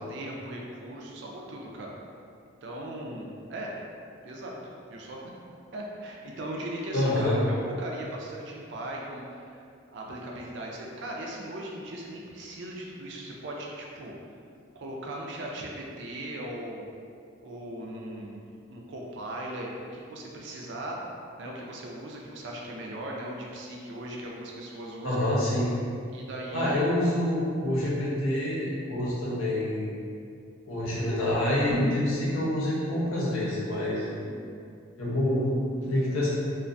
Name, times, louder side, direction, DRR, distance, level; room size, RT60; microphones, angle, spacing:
voice 1, 0.0-1.9 2.6-3.7 4.2-4.5 4.9-5.2 5.7-9.6 9.9-14.1 14.8-16.9 17.4-18.4 18.7-21.0 21.4-25.2 26.1-26.9 34.2-34.6, right 1 dB, 60° right, -2 dB, 0.3 m, -38 dB
voice 2, 6.9-7.4 25.0-25.7 26.5-29.9 30.7-34.1 35.0-36.3, left 1 dB, 90° left, -7 dB, 0.7 m, -27 dB
2.4 x 2.2 x 2.5 m, 2.4 s
head